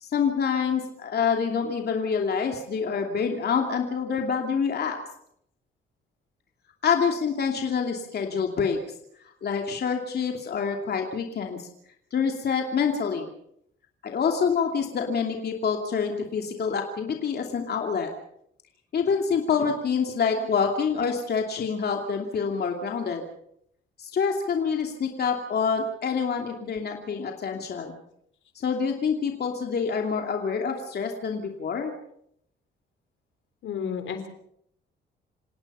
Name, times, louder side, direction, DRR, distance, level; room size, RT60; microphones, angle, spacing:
voice 1, 0.0-5.0 6.8-8.8 9.4-11.7 12.1-13.3 14.0-18.1 18.9-23.2 24.0-27.9 28.5-31.9, left 6 dB, 55° left, 2 dB, 2.7 m, -26 dB
voice 2, 33.6-34.3, left 7 dB, 75° left, 8 dB, 3.7 m, -32 dB
28.0 x 17.5 x 5.6 m, 0.72 s
cardioid pair, 90°, 20 cm